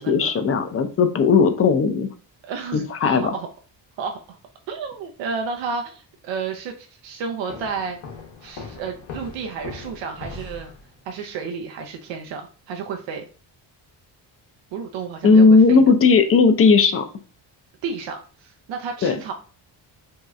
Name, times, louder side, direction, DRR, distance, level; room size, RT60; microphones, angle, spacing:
voice 1, 0.0-2.1 2.9-3.3 15.2-17.1 19.0-19.2, left 4 dB, 35° left, 8 dB, 0.4 m, -16 dB
voice 2, 2.4-3.5 4.0-4.4 4.7-8.0 8.4-10.7 11.1-13.3 14.7-15.8 17.8-19.3, right 5 dB, 80° right, 4 dB, 0.6 m, -31 dB
sound 1, 7.5-11.2, left 4 dB, 80° left, 0.9 m, -39 dB
3.0 x 2.7 x 2.3 m, 0.39 s
cardioid pair, 105°, 44 cm